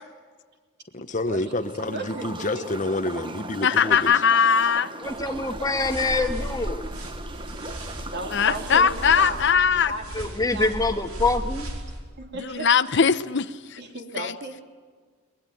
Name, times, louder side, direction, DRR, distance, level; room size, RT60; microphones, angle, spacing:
voice 1, 1.0-4.1, left 2 dB, 35° left, 10 dB, 1.0 m, -28 dB
sound 1, 1.4-10.1, right 2 dB, 25° right, 1.2 m, -39 dB
voice 2, 1.9-2.7 5.2-5.4 8.0-9.4 9.7-11.3 12.2-12.7 13.8-14.6, right 2 dB, 50° right, 3 dB, 3.6 m, -35 dB
voice 3, 3.6-4.9 8.3-9.9 12.5-13.8 14.2-14.3, left 6 dB, 55° left, 13 dB, 0.8 m, -20 dB
voice 4, 5.0-6.9 10.1-11.7, left 3 dB, 15° left, 6 dB, 1.5 m, -25 dB
sound 2, 5.0-12.0, equal, 85° right, 5.0 m, -36 dB
22.5 x 21.0 x 9.1 m, 1.5 s
head